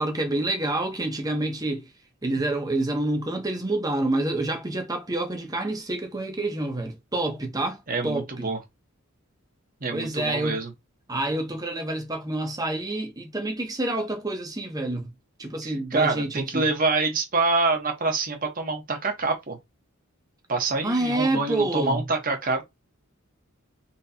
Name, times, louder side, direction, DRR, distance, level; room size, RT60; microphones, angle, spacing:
voice 1, 0.0-1.9 2.2-8.5 9.9-10.6 11.1-15.1 15.4-16.7 20.8-22.0, right 2 dB, 15° right, 0.9 m, -28 dB
voice 2, 7.9-8.6 9.8-10.7 15.6-19.6 20.5-22.6, right 3 dB, 40° right, 1.1 m, -26 dB
4.1 x 3.0 x 2.7 m
head